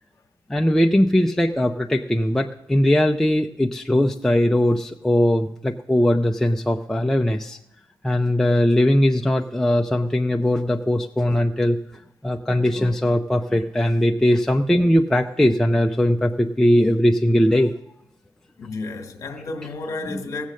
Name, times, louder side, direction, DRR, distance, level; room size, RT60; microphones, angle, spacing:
voice 1, 0.5-7.6 8.0-11.8 12.2-17.7 20.1-20.2, left 1 dB, 5° left, 0.4 m, -20 dB
voice 2, 18.6-20.5, left 3 dB, 40° left, 1.3 m, -31 dB
16.0 x 7.4 x 6.3 m
wide cardioid pair, 160°, 8 cm